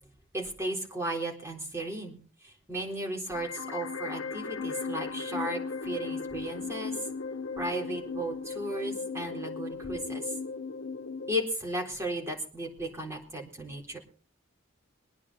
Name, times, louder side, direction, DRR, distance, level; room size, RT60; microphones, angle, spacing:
voice 1, 0.3-2.2 2.4-7.0 7.6-10.3 11.3-14.0, right 1 dB, 15° right, 1 dB, 3.9 m, -35 dB
sound 1, 3.3-11.3, left 4 dB, 90° left, 1.1 m, -37 dB
23.0 x 9.8 x 4.1 m, 0.39 s
head